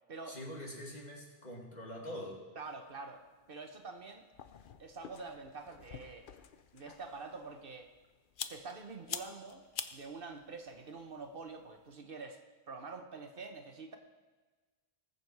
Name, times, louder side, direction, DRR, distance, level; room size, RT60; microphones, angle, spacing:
voice 1, 0.3-2.4, equal, 40° left, -2 dB, 2.5 m, -44 dB
voice 2, 2.6-4.3 4.8-6.3 6.7-7.9 8.5-9.6 9.9-12.4 12.7-14.0, right 4 dB, 60° right, 6 dB, 1.2 m, -46 dB
sound 1, 2.7-11.9, left 7 dB, 55° left, 0.8 m, -49 dB
19.5 x 7.0 x 4.7 m, 1.3 s
omnidirectional pair, 1.1 m